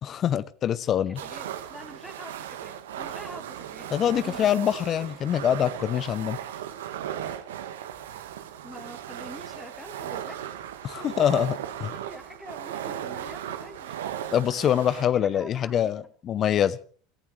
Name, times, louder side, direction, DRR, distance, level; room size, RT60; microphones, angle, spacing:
voice 1, 0.0-1.2 3.9-6.4 10.8-11.9 14.3-16.8, left 10 dB, 40° left, 18 dB, 0.7 m, -25 dB
voice 2, 1.2-4.5 8.6-10.7 11.0-11.1 11.9-13.9 15.0-16.1, equal, 5° left, 2 dB, 2.0 m, -45 dB
sound 1, 1.2-15.0, right 10 dB, 80° right, 1.4 m, -37 dB
28.5 x 14.5 x 3.3 m, 0.43 s
hypercardioid pair, 85°, 0 cm